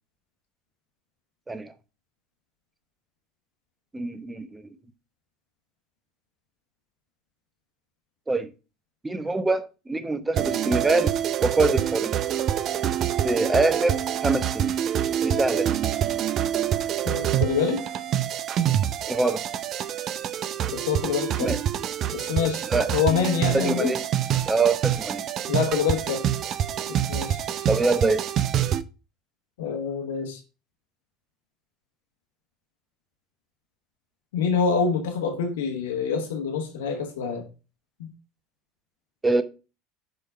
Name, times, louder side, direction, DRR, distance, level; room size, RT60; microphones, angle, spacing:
voice 1, 3.9-4.6 8.3-8.5 9.0-11.1 11.4-12.1 13.2-14.8 15.2-15.8 19.1-19.4 21.4-21.6 22.7-22.9 23.5-24.0 24.5-25.2 27.7-28.2 39.2-39.4, right 3 dB, 15° right, 0.8 m, -24 dB
sound 1, 10.3-28.8, right 10 dB, 40° right, 0.5 m, -26 dB
voice 2, 17.0-17.8 20.7-21.5 22.1-23.9 25.5-26.2 26.9-27.7 29.6-30.4 34.3-37.4 38.0-38.1, left 6 dB, 65° left, 1.1 m, -26 dB
6.4 x 4.4 x 4.5 m
figure-of-eight pair, 70°, 0 cm